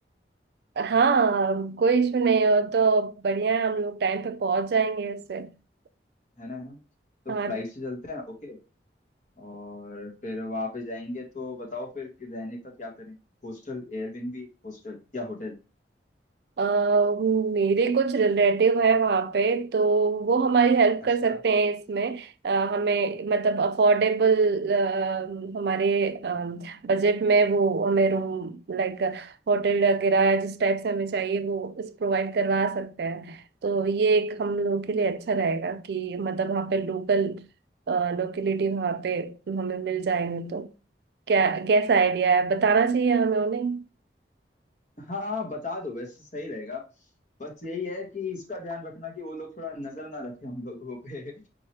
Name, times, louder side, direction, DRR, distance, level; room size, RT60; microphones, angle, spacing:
voice 1, 0.8-5.5 7.3-7.6 16.6-37.4 37.9-40.7 41.3-43.8, right 4 dB, 65° right, 0.4 m, -24 dB
voice 2, 6.4-6.8 7.2-8.6 9.4-13.2 13.4-15.5 21.2-21.4 45.0-46.8 47.4-51.3, left 3 dB, 45° left, 1.3 m, -36 dB
4.5 x 3.0 x 3.2 m
head